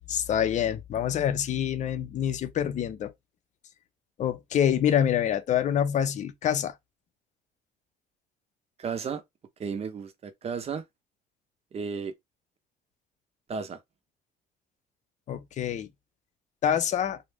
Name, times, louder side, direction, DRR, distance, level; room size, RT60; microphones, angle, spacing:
voice 1, 0.0-3.1 4.2-6.7 15.3-15.9 16.6-17.2, left 9 dB, 45° left, 0.5 m, -26 dB
voice 2, 8.8-9.2 9.6-10.8 11.7-12.1 13.5-13.8, right 6 dB, 35° right, 0.6 m, -33 dB
2.5 x 2.1 x 3.3 m
cardioid pair, 110°, 17 cm